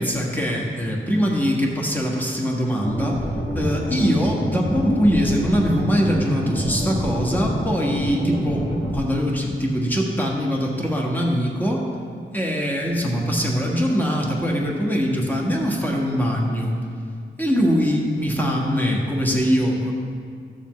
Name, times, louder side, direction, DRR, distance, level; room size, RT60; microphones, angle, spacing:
voice 1, 0.0-3.2 3.5-8.6 8.9-11.9 12.3-16.8 17.4-19.9, equal, 10° left, -2 dB, 1.4 m, -22 dB
sound 1, 2.8-9.0, equal, 45° left, 2.0 m, -27 dB
14.0 x 7.0 x 3.1 m, 2.1 s
wide cardioid pair, 85°, 21 cm